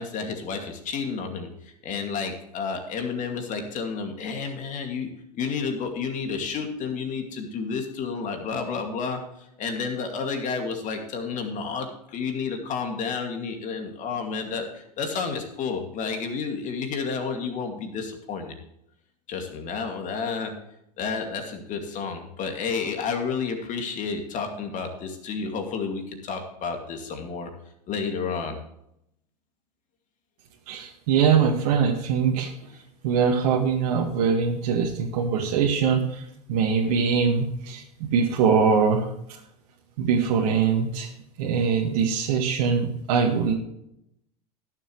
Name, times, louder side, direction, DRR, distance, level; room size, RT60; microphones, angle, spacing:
voice 1, 0.0-1.5 1.8-9.2 9.6-18.6 19.3-20.5 21.0-27.5 27.9-28.6, left 5 dB, 40° left, 4 dB, 2.5 m, -31 dB
voice 2, 30.7-32.5 33.0-39.4 40.0-41.1 41.4-43.5, right 6 dB, 60° right, 0 dB, 1.9 m, -23 dB
19.5 x 7.2 x 3.2 m, 0.78 s
hypercardioid pair, 95°, 20 cm